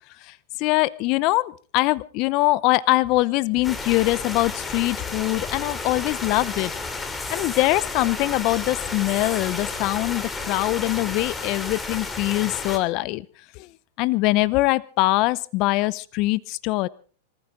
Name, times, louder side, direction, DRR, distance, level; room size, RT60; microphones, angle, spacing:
voice 1, 0.6-6.7 7.3-13.2 14.0-16.9, left 19 dB, 50° left, 19 dB, 0.8 m, -23 dB
sound 1, 3.6-12.8, left 3 dB, 15° left, 2.8 m, -32 dB
25.5 x 15.0 x 3.8 m, 0.41 s
hypercardioid pair, 110°, 0 cm